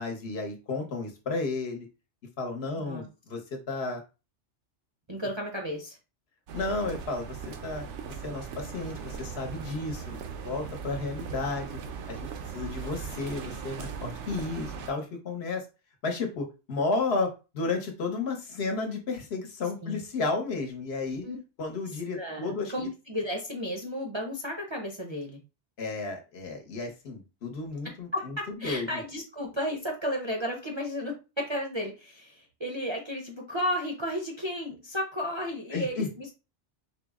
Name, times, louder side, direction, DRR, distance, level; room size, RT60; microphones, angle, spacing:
voice 1, 0.0-1.9 2.4-4.0 6.5-11.8 12.1-15.7 16.0-21.2 21.6-22.7 25.8-29.0 35.7-36.1, left 3 dB, 65° left, 3 dB, 1.1 m, -33 dB
voice 2, 5.1-6.0 19.8-20.0 21.2-21.4 22.1-25.4 28.1-36.3, equal, 35° right, 1 dB, 0.5 m, -33 dB
sound 1, 6.5-14.9, right 6 dB, 85° right, 0.9 m, -39 dB
4.4 x 2.0 x 3.5 m, 0.30 s
omnidirectional pair, 1.2 m